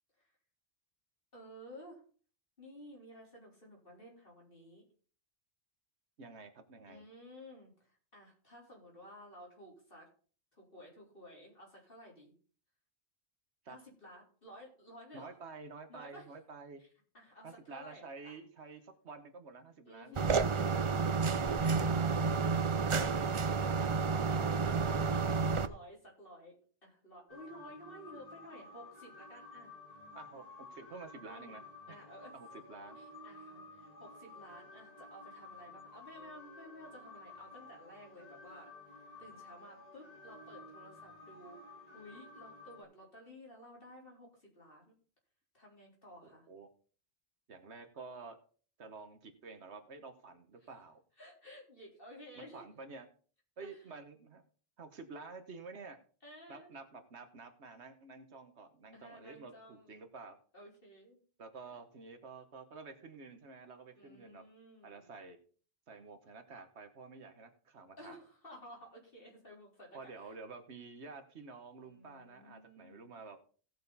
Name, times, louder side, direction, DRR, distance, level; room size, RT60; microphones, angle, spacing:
voice 1, 1.3-2.0 2.6-4.9 6.9-10.1 10.6-12.3 13.7-15.3 15.9-16.2 17.1-18.4 19.8-22.0 22.9-23.4 24.2-26.5 26.8-29.7 31.2-31.6 31.9-32.3 33.0-38.7 39.2-41.6 41.9-44.9 45.5-46.5 50.6-50.7 51.2-52.6 53.6-53.8 56.2-56.7 58.9-60.0 60.5-61.2 63.9-65.1 68.0-70.4 71.8-73.1, equal, 50° left, -3 dB, 4.3 m, -54 dB
voice 2, 6.2-7.0 13.6-13.8 15.1-16.8 17.4-20.4 21.2-22.1 22.9-25.3 30.1-32.0 32.3-33.0 46.2-46.7 47.5-48.4 48.8-51.0 52.4-53.1 53.6-54.4 54.8-56.0 56.5-60.4 61.4-64.4 64.8-65.4 65.9-68.2 69.9-73.4, right 4 dB, 70° right, 7 dB, 1.5 m, -50 dB
sound 1, 20.2-25.7, right 5 dB, 40° right, 0.4 m, -30 dB
sound 2, 27.3-42.8, left 2 dB, 35° left, 1.9 m, -53 dB
17.0 x 6.3 x 4.1 m, 0.42 s
omnidirectional pair, 1.2 m